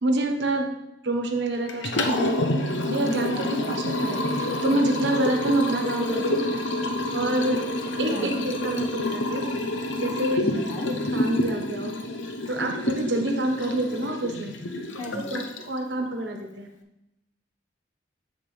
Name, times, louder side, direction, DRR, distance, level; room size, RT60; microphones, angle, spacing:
voice 1, 0.0-0.7 1.0-6.5 7.1-7.6 8.0-9.5 10.0-10.4 10.9-11.9 12.5-14.5 15.2-16.7, right 1 dB, 70° right, 3 dB, 1.1 m, -27 dB
Liquid, 1.7-15.8, left 1 dB, 80° left, 0.8 m, -28 dB
voice 2, 3.3-3.8 7.9-8.3 10.3-10.9 15.0-15.4, left 1 dB, 35° left, 0 dB, 1.1 m, -36 dB
7.4 x 7.0 x 3.3 m, 0.90 s
head